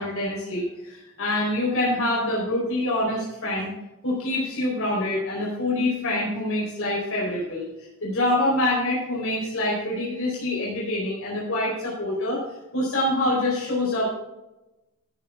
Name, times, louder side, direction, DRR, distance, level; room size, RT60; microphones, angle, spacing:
voice 1, 0.0-3.7 4.0-7.7 8.0-12.4 12.7-14.1, left 1 dB, 65° left, -5 dB, 4.4 m, -25 dB
13.5 x 9.7 x 3.7 m, 0.99 s
head